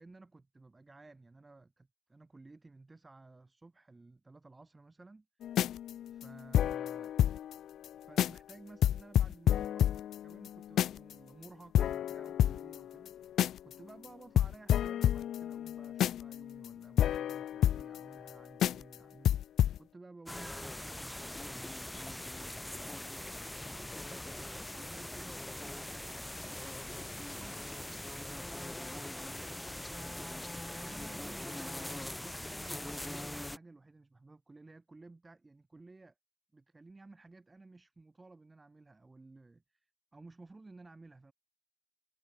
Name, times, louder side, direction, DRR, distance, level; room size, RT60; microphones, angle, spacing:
voice 1, 0.0-5.6 6.1-7.1 8.1-24.4 24.7-28.6 29.0-36.1 36.5-41.3, right 3 dB, 20° right, 6.0 m, -56 dB
sound 1, 5.4-7.6 7.8-7.9 8.2-8.5 8.8-11.1 11.4-11.5 11.7-13.7 14.0-14.1 14.4-18.3 18.6-18.9 19.2-19.8, left 11 dB, 70° left, 0.9 m, -29 dB
sound 2, 20.3-33.6, left 1 dB, 10° left, 1.7 m, -42 dB
cardioid pair, 90°, 0 cm